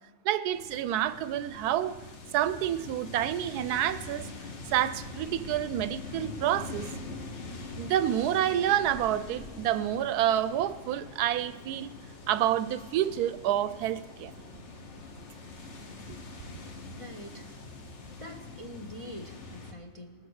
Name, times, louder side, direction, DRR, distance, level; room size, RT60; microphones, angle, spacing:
voice 1, 0.2-2.0 2.3-4.2 4.7-6.9 7.8-11.9 12.3-14.3, right 11 dB, 85° right, 1.1 m, -28 dB
sound 1, 0.5-19.7, left 3 dB, 50° left, 1.4 m, -44 dB
voice 2, 16.9-17.5 18.2-20.3, left 1 dB, 30° left, 0.6 m, -44 dB
19.0 x 7.8 x 6.3 m
omnidirectional pair, 1.6 m